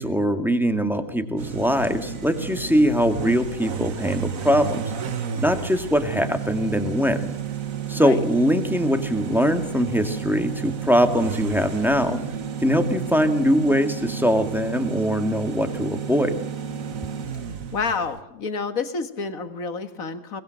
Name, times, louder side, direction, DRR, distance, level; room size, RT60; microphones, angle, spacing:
voice 1, 0.0-4.9 5.4-7.3 7.9-12.2 12.6-16.5, equal, ahead, 7 dB, 2.1 m, -22 dB
sound 1, 1.4-18.2, right 7 dB, 65° right, 1.7 m, -32 dB
voice 2, 17.7-20.4, left 4 dB, 70° left, 9 dB, 2.1 m, -29 dB
22.5 x 20.5 x 7.8 m, 0.83 s
omnidirectional pair, 1.5 m